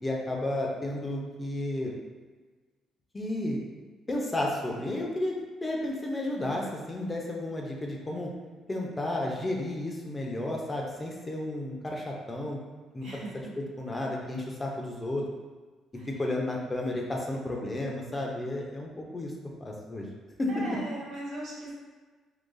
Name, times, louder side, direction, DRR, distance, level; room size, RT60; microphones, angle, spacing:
voice 1, 0.0-1.9 3.1-3.6 4.1-5.4 5.6-8.3 8.7-12.6 12.9-13.1 13.6-15.2 16.1-19.3 19.6-20.1 20.4-20.5, left 1 dB, 25° left, -1 dB, 0.7 m, -32 dB
voice 2, 13.0-13.5 15.9-16.1 20.5-21.7, right 1 dB, 75° right, -6 dB, 1.2 m, -39 dB
3.8 x 2.5 x 2.6 m, 1.4 s
supercardioid pair, 60°, 0 cm